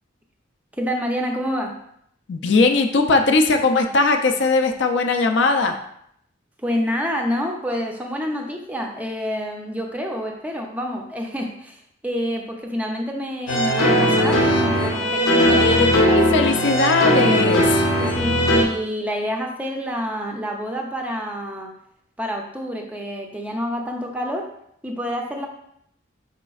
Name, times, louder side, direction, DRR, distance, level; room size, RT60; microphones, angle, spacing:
voice 1, 0.7-1.8 6.6-16.1 18.0-21.7 22.2-24.5 24.8-25.5, equal, 10° right, 1 dB, 0.4 m, -27 dB
voice 2, 2.3-5.8 15.5-17.6, left 3 dB, 60° left, 5 dB, 0.4 m, -19 dB
sound 1, 13.5-18.6, equal, 90° left, 0.8 m, -18 dB
5.0 x 4.1 x 2.3 m, 0.72 s
head